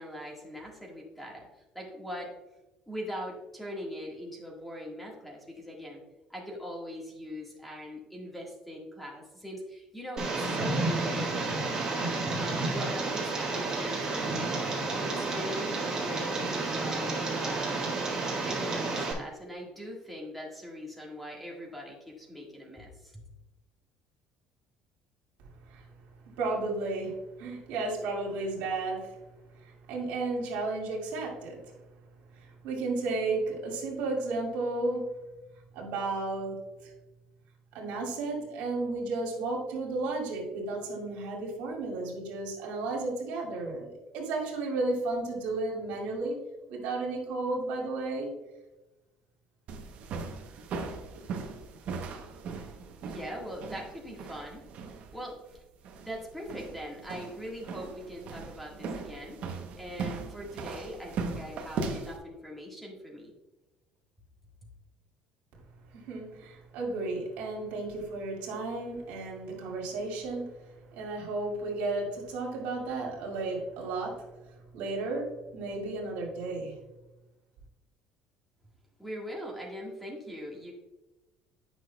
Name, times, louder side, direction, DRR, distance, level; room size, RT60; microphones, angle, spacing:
voice 1, 0.0-1.5 1.7-2.3 2.9-6.0 6.3-11.8 12.4-14.6 15.0-18.0 18.5-23.2 53.1-54.6 55.1-55.6 56.0-59.4 59.8-63.3 79.0-80.7, equal, 5° left, -2 dB, 1.7 m, -41 dB
Tick, 10.2-19.1, right 3 dB, 25° right, 1.8 m, -31 dB
voice 2, 26.4-29.2 29.6-31.6 32.3-35.0 35.7-36.9 37.7-46.4 46.7-48.3 65.9-70.5 70.9-74.3 74.7-76.7, right 3 dB, 85° right, -2 dB, 2.2 m, -33 dB
sound 1, 49.7-62.2, right 4 dB, 55° right, 0.9 m, -39 dB
9.1 x 6.0 x 2.3 m, 1.0 s
cardioid pair, 120°, 3 cm